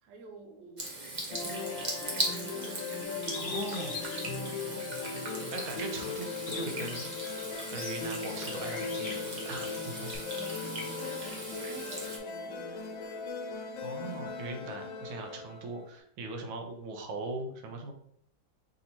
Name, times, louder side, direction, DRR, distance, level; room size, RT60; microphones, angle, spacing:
voice 1, 0.0-0.9 1.4-3.8 4.1-5.7 10.3-13.0, right 3 dB, 70° right, 4 dB, 1.1 m, -50 dB
Water tap faucet / Sink (filling or washing), 0.8-12.2, right 2 dB, 55° right, 0.5 m, -39 dB
sound 1, 1.3-15.9, left 5 dB, 80° left, 1.4 m, -39 dB
Bird, 3.2-5.2 5.7-10.2, left 3 dB, 50° left, 1.2 m, -44 dB
voice 2, 3.4-4.0 5.1-5.3 5.5-7.1 7.7-10.2 13.8-17.9, right 3 dB, 85° right, 4 dB, 1.5 m, -40 dB
5.3 x 2.8 x 2.9 m, 0.65 s
omnidirectional pair, 2.1 m